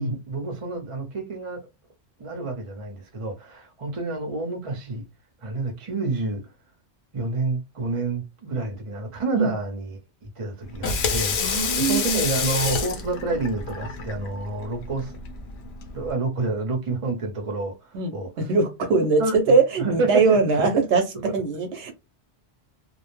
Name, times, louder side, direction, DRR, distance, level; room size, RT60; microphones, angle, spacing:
voice 1, 0.0-1.7 2.2-5.1 5.4-6.5 7.1-11.4 11.7-15.2 15.9-18.4 19.2-20.8, right 3 dB, 30° right, 0.7 m, -29 dB
Water tap faucet / Sink (filling or washing), 10.6-16.1, left 5 dB, 65° left, 0.8 m, -28 dB
voice 2, 11.4-12.2 17.9-19.2 19.5-21.0 21.3-21.9, right 4 dB, 70° right, 0.9 m, -21 dB
2.5 x 2.0 x 3.1 m
omnidirectional pair, 1.2 m